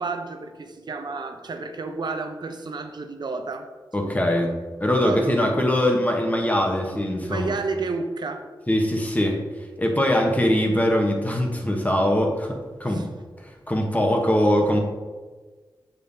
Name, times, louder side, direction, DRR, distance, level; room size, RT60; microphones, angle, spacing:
voice 1, 0.0-3.7 4.0-4.4 5.0-5.5 7.2-8.5 12.8-13.1, right 3 dB, 60° right, 7 dB, 0.6 m, -31 dB
voice 2, 3.9-4.5 4.8-7.5 8.7-9.4 9.8-13.0 13.4-14.8, left 1 dB, 20° left, 2 dB, 1.0 m, -22 dB
6.5 x 5.3 x 2.7 m, 1.4 s
cardioid pair, 60°, 8 cm